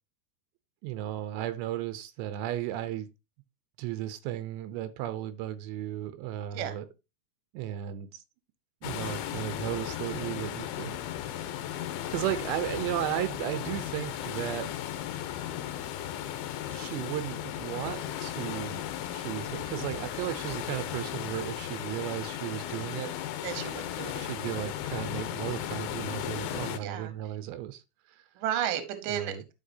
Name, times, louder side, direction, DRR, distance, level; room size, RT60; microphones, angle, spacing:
voice 1, 0.8-3.1 3.8-6.9 7.5-8.2 8.8-11.0 11.8-14.7 16.7-18.8 19.1-23.1 24.2-27.8 29.1-29.4, right 13 dB, 85° right, 2.9 m, -35 dB
sound 1, 8.8-26.8, left 11 dB, 80° left, 2.4 m, -36 dB
voice 2, 23.4-24.6 26.8-27.1 28.4-29.4, right 10 dB, 65° right, 2.4 m, -33 dB
11.5 x 5.8 x 2.7 m
omnidirectional pair, 4.9 m